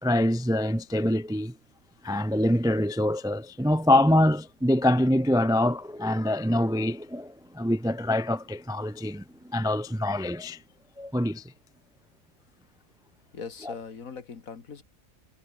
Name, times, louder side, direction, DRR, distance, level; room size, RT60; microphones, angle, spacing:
voice 1, 0.0-1.5 2.0-10.6 11.0-11.4 13.7-13.8, left 1 dB, 5° right, 0.5 m, -25 dB
voice 2, 13.3-14.8, left 5 dB, 70° left, 2.3 m, -40 dB
omnidirectional pair, 1.5 m